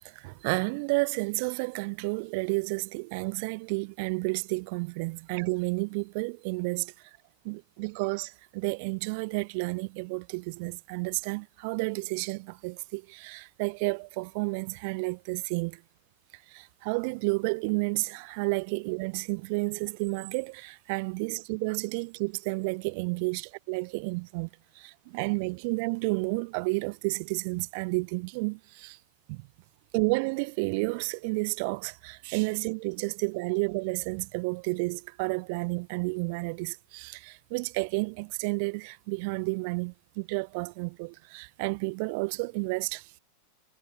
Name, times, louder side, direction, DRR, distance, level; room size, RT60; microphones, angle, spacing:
voice 1, 0.0-6.9 7.4-15.8 16.5-24.5 24.8-29.0 29.3-29.5 29.9-43.1, right 31 dB, 45° right, 0.9 m, -31 dB
figure-of-eight pair, 90°, 0 cm